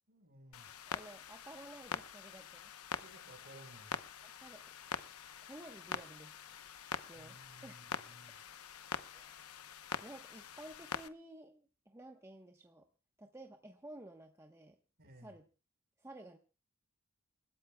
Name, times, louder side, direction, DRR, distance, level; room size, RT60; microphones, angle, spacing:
voice 1, 0.1-0.7 3.0-3.9 7.2-7.8 8.1-8.3 15.0-15.3, right 1 dB, 45° right, 5 dB, 4.5 m, -57 dB
Clock, 0.5-11.1, left 7 dB, 75° left, 0.9 m, -45 dB
voice 2, 0.9-2.7 4.2-4.6 5.4-6.3 7.1-7.4 7.6-7.8 9.1-9.5 10.0-12.9 13.2-14.8 15.1-15.5 16.0-16.4, right 1 dB, 15° right, 4 dB, 1.0 m, -53 dB
29.5 x 13.5 x 2.3 m, 0.34 s
head